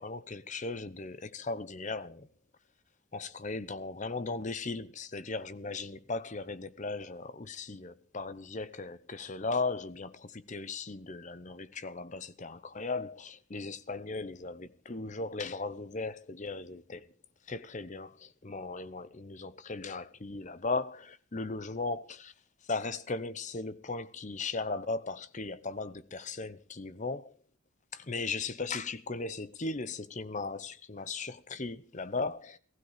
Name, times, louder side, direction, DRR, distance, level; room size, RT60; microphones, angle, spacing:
voice 1, 0.0-2.3 3.1-17.1 17.5-22.3 22.6-27.3 27.9-32.6, left 3 dB, 35° left, 0.8 m, -37 dB
16.0 x 15.5 x 4.9 m
head